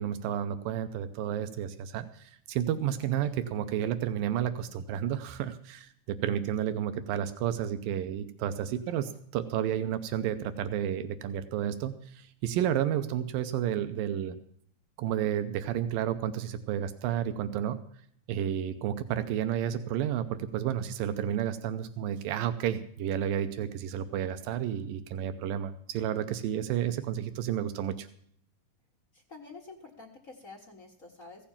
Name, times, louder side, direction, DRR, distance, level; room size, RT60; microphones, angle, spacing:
voice 1, 0.0-14.4 15.0-17.8 18.3-28.1, right 10 dB, 90° right, 10 dB, 2.4 m, -31 dB
voice 2, 3.0-3.3 8.9-9.2 29.1-31.5, left 3 dB, 45° left, 2 dB, 1.0 m, -49 dB
15.5 x 7.0 x 7.1 m, 0.65 s
omnidirectional pair, 3.8 m